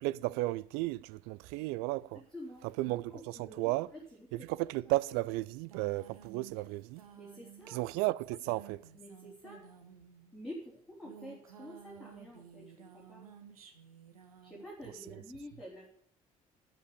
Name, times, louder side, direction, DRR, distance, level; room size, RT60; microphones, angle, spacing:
voice 1, 0.0-2.2 2.8-3.9 4.3-7.0 7.7-8.8, right 19 dB, 60° right, 0.4 m, -34 dB
voice 2, 2.1-4.5 7.1-7.8 8.9-9.7 10.3-13.3 14.4-15.9, equal, 5° left, 3.7 m, -49 dB
sound 1, 5.3-10.4 10.9-14.6, right 8 dB, 80° right, 1.1 m, -54 dB
8.7 x 8.4 x 8.5 m
figure-of-eight pair, 55°, 18 cm